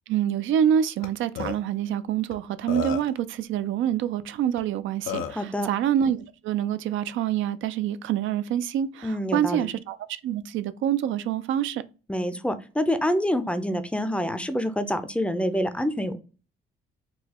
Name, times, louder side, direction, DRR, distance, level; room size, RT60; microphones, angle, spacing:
voice 1, 0.1-10.0 10.2-11.8, right 10 dB, 75° right, 0.4 m, -26 dB
Burping eructation, 1.0-1.1 1.4-1.6 2.3-2.4 2.7-3.2 4.6-4.7 5.1-5.4, left 6 dB, 90° left, 0.5 m, -31 dB
voice 2, 5.4-5.7 9.0-9.7 12.1-16.2, equal, 5° left, 0.5 m, -26 dB
3.9 x 2.3 x 2.9 m
cardioid pair, 90°, 20 cm